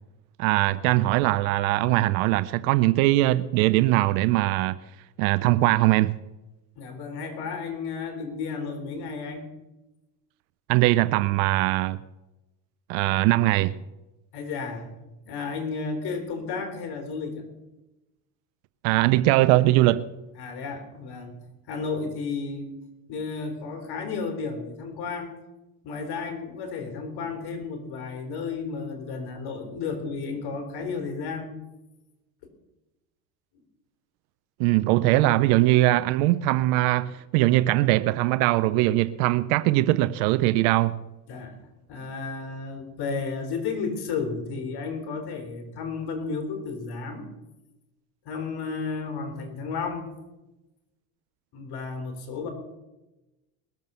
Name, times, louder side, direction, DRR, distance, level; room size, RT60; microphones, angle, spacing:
voice 1, 0.4-4.7 5.2-6.2 10.7-12.0 12.9-13.8 18.8-20.1 34.6-41.0, right 17 dB, 80° right, 0.6 m, -21 dB
voice 2, 6.8-9.5 14.3-14.9 15.3-17.4 20.4-21.4 21.7-22.8 23.1-25.3 25.8-31.5 33.5-33.6 35.0-35.1 41.3-41.6 41.9-47.3 48.3-50.1 51.5-52.5, left 4 dB, 65° left, 3.7 m, -33 dB
20.5 x 7.4 x 6.8 m
supercardioid pair, 100°, 42 cm